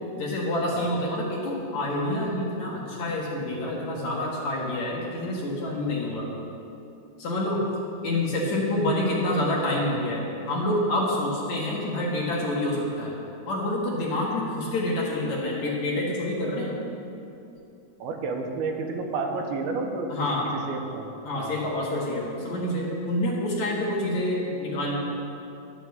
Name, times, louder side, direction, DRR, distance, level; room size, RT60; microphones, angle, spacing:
voice 1, 0.2-6.3 7.2-7.6 8.0-13.1 13.5-16.8 20.1-20.5 21.2-25.0, left 1 dB, 55° left, -4 dB, 2.6 m, -27 dB
voice 2, 18.0-20.1 20.5-21.1 21.3-21.6, right 4 dB, 85° right, 3 dB, 2.9 m, -30 dB
11.5 x 7.3 x 7.8 m, 2.8 s
omnidirectional pair, 4.4 m